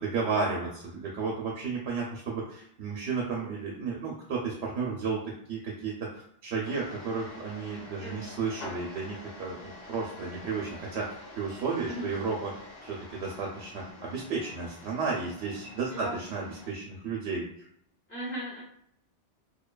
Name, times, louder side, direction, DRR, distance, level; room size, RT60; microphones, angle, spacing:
voice 1, 0.0-12.5 12.8-17.5, right 4 dB, 80° right, -2 dB, 0.9 m, -33 dB
sound 1, 6.6-16.7, left 2 dB, 65° left, 0.8 m, -47 dB
voice 2, 18.1-18.6, equal, 10° left, -9 dB, 0.8 m, -36 dB
2.8 x 2.2 x 2.2 m, 0.69 s
omnidirectional pair, 1.1 m